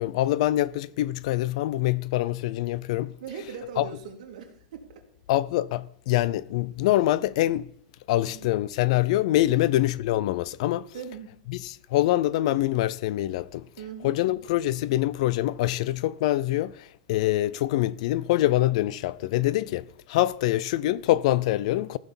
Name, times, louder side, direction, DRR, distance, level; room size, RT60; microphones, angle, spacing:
voice 1, 0.0-3.2 3.8-3.9 5.3-7.7 8.1-10.9 11.5-13.7 14.0-22.0, left 15 dB, 55° left, 0.5 m, -25 dB
voice 2, 3.2-5.0 8.2-8.5 9.5-9.7 10.9-11.3 13.8-14.2, right 6 dB, 60° right, 2.8 m, -40 dB
15.0 x 6.1 x 7.1 m
supercardioid pair, 165°, 4 cm